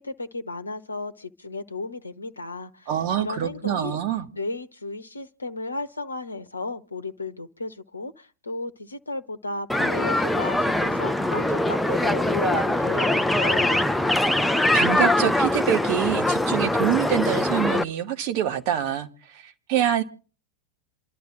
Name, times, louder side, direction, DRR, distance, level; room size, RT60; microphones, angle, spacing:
voice 1, 0.0-2.9 3.2-4.0 4.3-13.9, left 3 dB, 80° left, 0.9 m, -34 dB
voice 2, 2.9-4.3 14.7-20.0, right 10 dB, 45° right, 1.8 m, -25 dB
sound 1, 9.7-17.8, left 1 dB, 5° left, 0.7 m, -22 dB
27.5 x 12.0 x 3.9 m
figure-of-eight pair, 90°, 0 cm